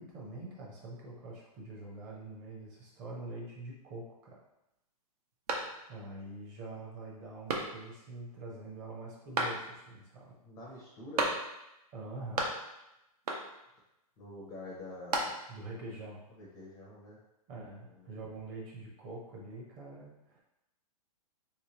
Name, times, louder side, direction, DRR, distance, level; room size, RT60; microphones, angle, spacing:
voice 1, 0.0-4.4 5.9-10.3 11.9-12.5 15.5-16.2 17.5-20.4, right 2 dB, 25° right, -3 dB, 0.7 m, -45 dB
sound 1, 5.5-6.2 6.6-6.7 7.5-8.1 9.3-10.0 11.2-11.8 12.0-12.9 13.3-13.8 14.7-15.7, right 2 dB, 85° right, 0.8 m, -35 dB
voice 2, 10.4-11.4 14.2-15.3 16.4-17.2 17.9-18.2, left 2 dB, 15° left, -5 dB, 0.5 m, -46 dB
3.2 x 3.0 x 2.9 m, 0.89 s
hypercardioid pair, 165°, 19 cm